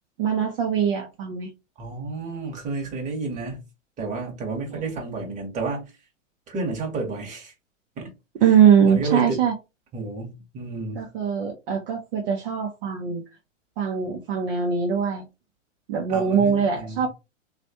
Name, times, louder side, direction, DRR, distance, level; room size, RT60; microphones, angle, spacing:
voice 1, 0.2-1.5 4.7-4.8 8.4-9.5 11.0-13.2 13.8-15.3 15.9-17.1, right 7 dB, 45° right, 0.8 m, -22 dB
voice 2, 1.8-3.6 4.0-5.9 6.5-7.5 8.0-8.1 8.8-9.4 9.9-11.1 16.1-17.1, right 3 dB, 20° right, 1.2 m, -31 dB
3.1 x 2.4 x 2.8 m
hypercardioid pair, 115°, 39 cm